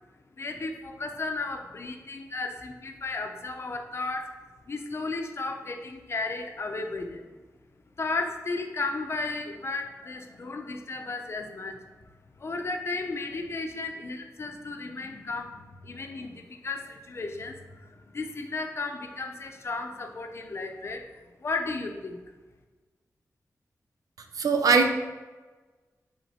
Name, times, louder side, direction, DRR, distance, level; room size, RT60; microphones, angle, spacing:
voice 1, 0.4-4.3 4.7-7.2 8.0-21.1 21.4-22.2, left 3 dB, 45° left, 4 dB, 0.7 m, -34 dB
voice 2, 24.4-24.9, right 4 dB, 80° right, 5 dB, 0.6 m, -20 dB
6.1 x 4.5 x 4.3 m, 1.3 s
wide cardioid pair, 155°, 6 cm